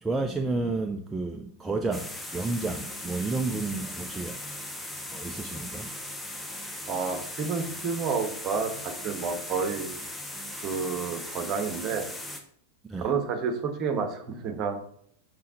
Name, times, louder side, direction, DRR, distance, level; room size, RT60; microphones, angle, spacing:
voice 1, 0.0-4.4 5.1-5.9 12.9-13.1, right 3 dB, 10° right, 4 dB, 0.5 m, -31 dB
sound 1, 1.9-12.4, left 1 dB, 5° left, 0.9 m, -38 dB
voice 2, 6.9-9.9 10.6-12.1 13.0-14.8, right 5 dB, 35° right, 6 dB, 1.2 m, -30 dB
5.7 x 5.2 x 3.9 m, 0.64 s
figure-of-eight pair, 90°, 0 cm